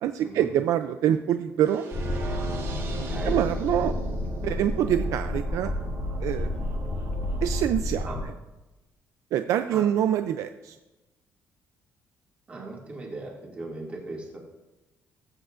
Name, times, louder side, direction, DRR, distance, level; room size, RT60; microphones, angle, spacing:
voice 1, 0.0-1.9 3.2-3.9 4.4-5.7 6.2-6.5 7.4-8.3 9.3-10.8, right 11 dB, 75° right, 9 dB, 0.4 m, -25 dB
sound 1, 1.7-7.6, right 3 dB, 55° right, 1.6 m, -39 dB
sound 2, 1.9-8.2, left 1 dB, 30° left, 1.8 m, -30 dB
voice 2, 2.9-3.4 8.1-8.2 9.7-9.8 12.5-14.4, right 2 dB, 25° right, -2 dB, 2.3 m, -38 dB
19.5 x 7.9 x 2.6 m, 1.1 s
cardioid pair, 170°, 5 cm